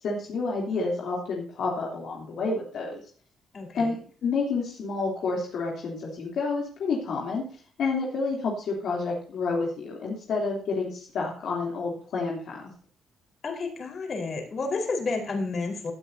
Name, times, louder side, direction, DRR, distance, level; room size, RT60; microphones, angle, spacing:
voice 1, 0.0-3.0 3.7-4.0 4.2-12.7, left 4 dB, 70° left, -2 dB, 3.0 m, -29 dB
voice 2, 3.5-4.0 13.4-15.9, left 3 dB, 50° left, 3 dB, 4.3 m, -31 dB
17.0 x 9.1 x 2.7 m, 0.43 s
cardioid pair, 90°, 0 cm